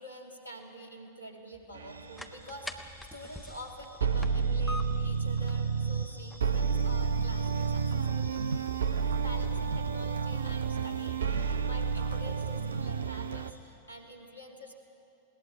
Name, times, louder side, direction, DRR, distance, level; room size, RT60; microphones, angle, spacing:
voice 1, 0.0-8.5 9.2-14.7, right 1 dB, 85° left, 2 dB, 2.6 m, -47 dB
sound 1, 1.5-13.3, left 1 dB, ahead, 1.2 m, -49 dB
sound 2, 1.8-2.0 4.0-6.1 6.4-13.5, right 5 dB, 70° right, 0.7 m, -30 dB
sound 3, 1.9-13.6, equal, 90° right, 5.5 m, -52 dB
20.5 x 19.0 x 8.8 m, 2.7 s
figure-of-eight pair, 90°, 0 cm